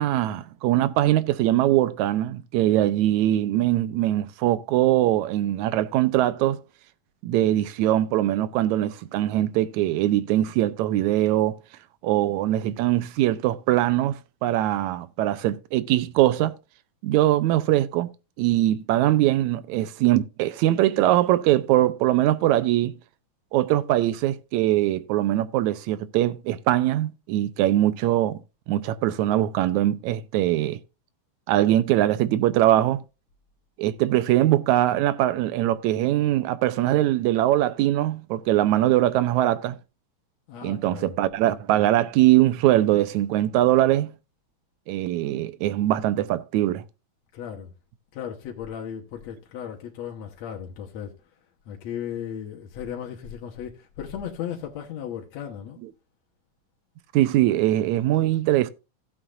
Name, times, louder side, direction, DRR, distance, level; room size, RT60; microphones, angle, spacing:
voice 1, 0.0-6.6 7.2-11.6 12.0-16.6 17.0-18.1 18.4-22.9 23.5-28.4 28.7-30.8 31.5-33.0 33.8-39.8 40.6-44.1 44.9-46.8 55.8-55.9 57.1-58.7, right 14 dB, 85° right, 2.0 m, -22 dB
voice 2, 40.5-41.2 47.3-47.7 48.1-51.1 51.7-55.8, left 9 dB, 70° left, 2.3 m, -36 dB
15.5 x 7.8 x 2.5 m
omnidirectional pair, 3.3 m